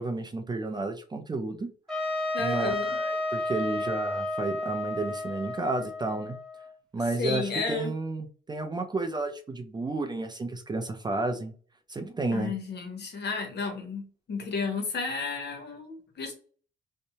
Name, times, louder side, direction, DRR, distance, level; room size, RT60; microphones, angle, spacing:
voice 1, 0.0-1.7 2.4-6.4 6.9-11.5 11.9-12.5, right 2 dB, 20° right, 6 dB, 0.4 m, -32 dB
Trumpet, 1.9-6.7, left 2 dB, ahead, 1.1 m, -32 dB
voice 2, 2.3-2.9 7.2-7.9 12.3-16.3, left 3 dB, 55° left, 4 dB, 0.9 m, -32 dB
2.7 x 2.1 x 2.7 m, 0.41 s
cardioid pair, 90°, 20 cm